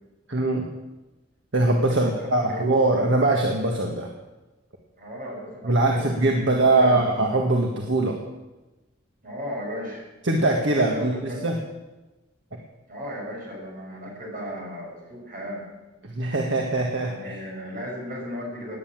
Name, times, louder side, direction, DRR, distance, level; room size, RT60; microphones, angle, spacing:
voice 1, 0.3-0.7 1.5-4.1 5.6-8.2 10.2-11.6 16.0-17.4, right 2 dB, 65° right, 1 dB, 1.7 m, -22 dB
voice 2, 1.9-2.7 5.0-6.2 6.8-7.0 9.2-10.1 10.7-11.5 12.9-15.7 17.0-18.8, equal, 45° right, -1 dB, 5.9 m, -35 dB
18.5 x 9.6 x 7.5 m, 1.1 s
head